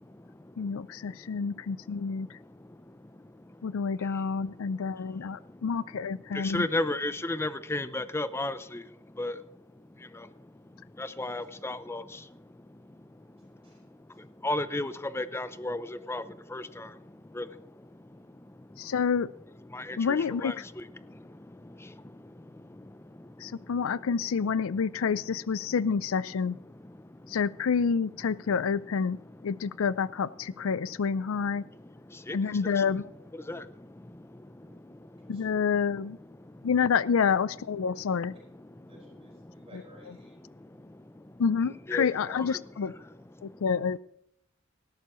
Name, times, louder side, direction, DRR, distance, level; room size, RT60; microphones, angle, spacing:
voice 1, 0.6-2.3 3.6-6.7 18.8-19.3 20.0-20.6 23.4-26.6 27.3-29.2 29.4-31.6 32.3-33.1 35.3-36.2 36.6-38.3 41.4-42.9 43.4-44.0, left 6 dB, 80° left, 19 dB, 0.4 m, -28 dB
voice 2, 6.3-8.8 9.2-9.4 11.0-12.0 14.4-16.2 16.5-16.9 17.4-17.5 19.7-20.5 32.3-32.4 33.5-33.6 41.9-42.5, left 2 dB, 10° left, 14 dB, 0.5 m, -32 dB
voice 3, 34.6-34.9 35.2-35.6 37.9-38.0 38.9-40.4, right 1 dB, 30° right, -3 dB, 5.2 m, -56 dB
18.0 x 13.0 x 3.1 m, 0.76 s
head